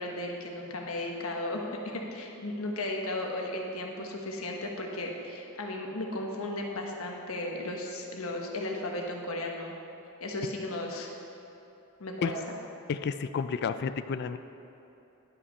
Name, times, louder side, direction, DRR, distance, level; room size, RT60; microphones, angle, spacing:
voice 1, 0.0-9.8 10.2-11.1 12.0-12.6, left 1 dB, 80° left, 1 dB, 1.2 m, -35 dB
voice 2, 12.9-14.4, left 6 dB, 50° left, 11 dB, 0.3 m, -31 dB
11.0 x 5.7 x 5.4 m, 3.0 s
head